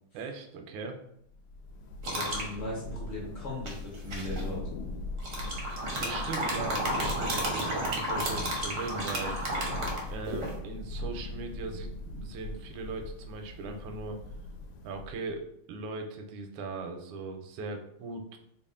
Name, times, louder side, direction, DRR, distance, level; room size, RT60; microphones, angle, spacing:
voice 1, 0.1-1.0 6.0-9.4 10.1-14.2 14.8-18.4, right 3 dB, 85° right, 5 dB, 1.5 m, -39 dB
Thunder / Rain, 1.3-15.4, left 2 dB, 75° left, 1.2 m, -40 dB
voice 2, 2.0-4.6, left 1 dB, 45° left, -4 dB, 0.9 m, -38 dB
sound 1, 2.0-2.5 3.7-4.4 5.2-10.5, right 1 dB, 65° right, 0.7 m, -32 dB
3.5 x 2.3 x 3.6 m, 0.71 s
omnidirectional pair, 2.4 m